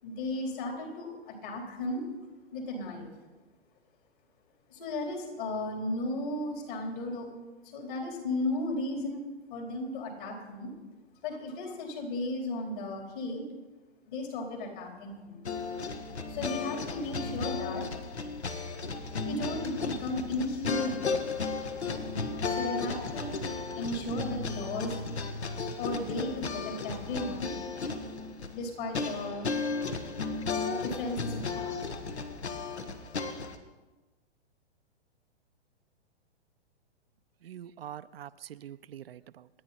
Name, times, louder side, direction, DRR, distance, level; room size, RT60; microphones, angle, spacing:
voice 1, 0.0-2.1 2.5-3.1 4.7-7.3 7.6-9.2 9.5-10.7 11.2-13.4 14.1-15.4 16.3-18.0 19.2-21.1 22.5-23.4 23.7-25.0 25.8-27.6 28.5-29.6 30.8-31.8, left 2 dB, 50° left, 1 dB, 4.3 m, -35 dB
sound 1, 15.4-33.6, left 4 dB, 75° left, 1.7 m, -34 dB
voice 2, 37.4-39.5, right 10 dB, 60° right, 12 dB, 0.6 m, -44 dB
28.5 x 9.5 x 4.4 m, 1.2 s
hypercardioid pair, 125°, 33 cm